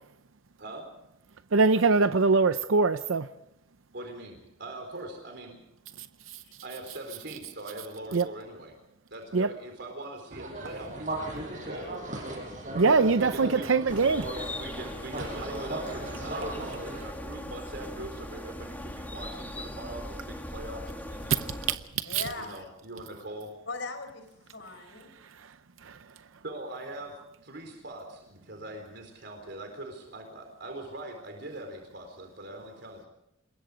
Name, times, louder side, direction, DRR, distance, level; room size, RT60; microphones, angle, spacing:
voice 1, 1.5-3.3 8.1-8.3 9.3-9.5 12.7-14.3 22.1-22.2, right 4 dB, 90° right, 0.7 m, -22 dB
voice 2, 3.9-5.6 6.6-8.7 9.1-12.0 13.2-13.8 14.5-21.6 22.4-23.5 26.4-27.1 27.4-33.1, right 1 dB, 60° right, 4.2 m, -42 dB
sound 1, 10.3-17.1, right 1 dB, 40° right, 6.1 m, -37 dB
sound 2, 13.9-21.8, left 1 dB, 10° left, 2.2 m, -39 dB
voice 3, 22.0-22.7 23.7-25.1, left 3 dB, 65° left, 4.5 m, -39 dB
27.0 x 21.5 x 5.1 m
head